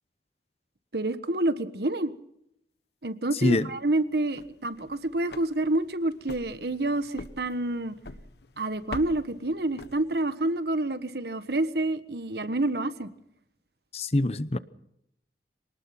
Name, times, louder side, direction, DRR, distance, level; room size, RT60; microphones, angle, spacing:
voice 1, 0.9-2.1 3.0-7.9 8.6-13.1, right 2 dB, 70° right, 1.4 m, -28 dB
voice 2, 3.3-3.7 13.9-14.6, left 2 dB, 35° left, 0.8 m, -24 dB
sound 1, 4.2-10.5, left 2 dB, 75° left, 1.3 m, -45 dB
24.5 x 19.0 x 5.9 m
head